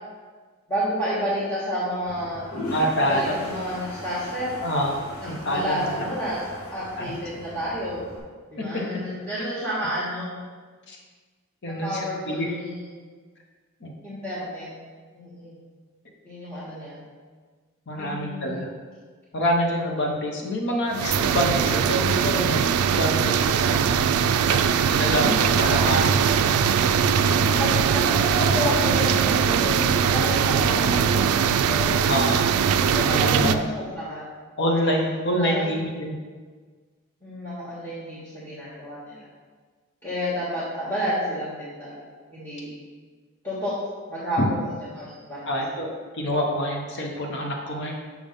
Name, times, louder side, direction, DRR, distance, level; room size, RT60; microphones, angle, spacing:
voice 1, 0.7-2.5 3.1-4.6 5.2-6.4 6.7-8.0 8.5-10.4 11.6-13.0 14.0-14.7 15.1-15.5 16.2-17.0 18.0-18.6 25.2-25.5 27.5-32.1 32.8-34.3 34.6-35.0 35.4-35.7 37.2-39.3 40.0-42.0 42.3-42.7 43.4-43.7 44.1-45.7, equal, 10° left, -11 dB, 1.5 m, -30 dB
Toilet flush, 2.1-8.2, left 1 dB, 85° left, 1.8 m, -38 dB
voice 2, 2.7-3.3 4.6-4.9 5.3-5.8 7.0-7.1 8.6-8.8 9.4-9.5 10.9-11.0 11.6-12.5 13.8-13.9 17.9-18.7 19.3-24.1 24.5-24.7 24.9-26.2 32.1-32.4 33.1-33.6 34.6-36.2 44.4-44.5 45.5-45.9 46.1-47.9, equal, 55° left, 0 dB, 0.8 m, -26 dB
sound 1, 20.9-33.6, right 7 dB, 80° right, 0.3 m, -21 dB
6.2 x 3.6 x 5.4 m, 1.5 s
head